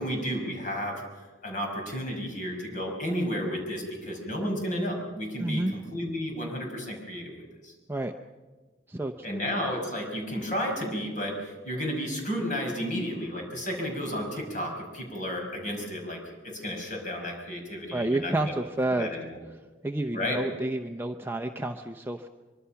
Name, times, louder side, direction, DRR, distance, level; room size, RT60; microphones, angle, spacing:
voice 1, 0.0-7.3 7.6-7.7 9.2-16.2 16.4-18.5 18.9-19.4 20.1-20.4, equal, 45° left, 2 dB, 5.8 m, -32 dB
voice 2, 5.4-5.7 7.9-8.1 8.9-9.4 17.9-19.1 19.8-22.3, right 1 dB, 10° right, 5 dB, 0.7 m, -30 dB
24.0 x 24.0 x 5.8 m, 1.3 s
head